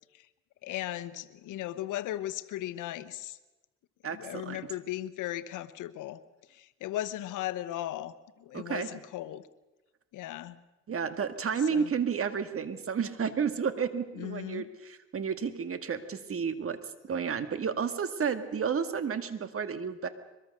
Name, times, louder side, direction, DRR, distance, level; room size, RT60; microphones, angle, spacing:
voice 1, 0.6-3.4 4.1-6.2 6.5-9.4 10.1-10.6 11.7-11.9 14.1-14.6, left 14 dB, 90° left, 15 dB, 1.1 m, -37 dB
voice 2, 4.0-4.6 8.5-8.9 10.9-16.8 17.0-20.1, right 6 dB, 45° right, 10 dB, 2.0 m, -31 dB
23.0 x 22.0 x 6.7 m, 1.1 s
cardioid pair, 90°, 30 cm